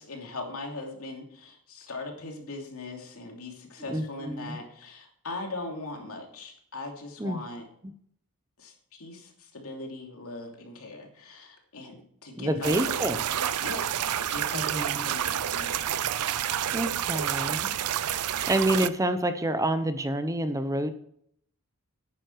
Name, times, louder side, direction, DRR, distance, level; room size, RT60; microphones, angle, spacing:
voice 1, 0.0-7.6 8.6-12.7 13.3-16.1 16.4-16.9, left 2 dB, 70° left, 2 dB, 2.8 m, -40 dB
voice 2, 3.9-4.6 7.2-7.4 7.8-7.9 12.4-13.2 14.5-15.1 16.7-17.7 18.5-20.9, right 1 dB, 15° right, 10 dB, 0.7 m, -28 dB
sound 1, 12.6-18.9, right 10 dB, 90° right, 0.5 m, -29 dB
11.0 x 9.4 x 4.6 m, 0.67 s
head